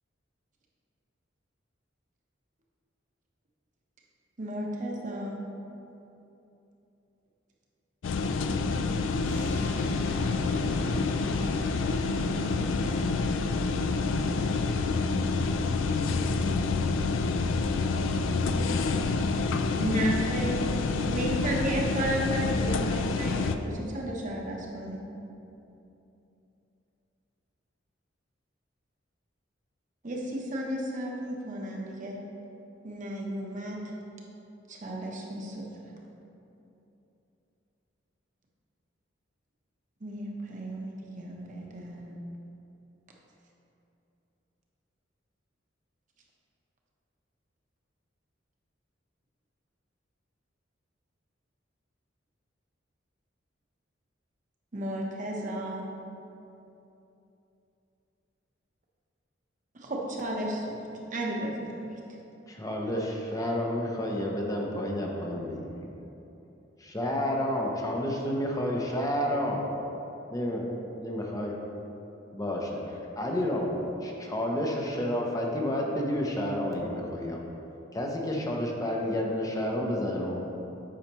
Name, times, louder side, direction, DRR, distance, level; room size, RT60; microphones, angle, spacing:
voice 1, 4.4-5.4 19.8-20.7 21.0-25.0 30.0-32.2 32.8-33.9 34.7-35.9 40.0-42.2 54.7-55.8 59.7-60.8 61.1-62.0, right 1 dB, 40° right, -1 dB, 1.0 m, -33 dB
sound 1, 8.0-23.6, left 3 dB, 85° left, 0.4 m, -28 dB
sound 2, 9.2-15.1, left 2 dB, 65° left, 1.0 m, -40 dB
voice 2, 17.7-19.8 20.1-21.6, right 2 dB, 65° right, 3 dB, 0.5 m, -47 dB
voice 3, 62.5-65.6 66.8-69.7 70.3-70.7 71.0-71.5 72.3-73.7 74.0-77.4 77.9-80.4, left 1 dB, 20° left, -1 dB, 0.7 m, -30 dB
8.5 x 5.6 x 3.0 m, 2.9 s
head